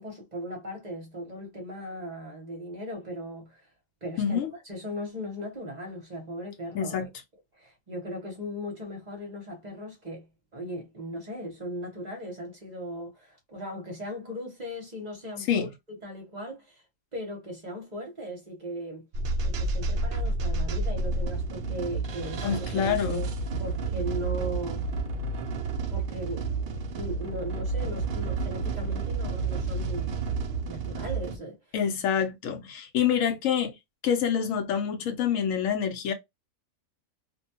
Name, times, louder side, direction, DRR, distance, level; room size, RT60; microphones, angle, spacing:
voice 1, 0.0-3.7 4.0-4.4 4.6-7.1 7.6-10.3 10.5-16.8 17.1-19.1 19.4-23.3 23.6-24.9 25.9-30.2 30.7-31.6, equal, 35° right, 0.8 m, -38 dB
voice 2, 4.2-4.5 6.7-7.1 15.5-15.7 22.4-23.2 31.7-33.7 34.0-36.1, left 8 dB, 70° left, 1.0 m, -26 dB
sound 1, 19.1-31.4, right 3 dB, 75° right, 0.4 m, -30 dB
2.5 x 2.2 x 2.7 m
omnidirectional pair, 1.5 m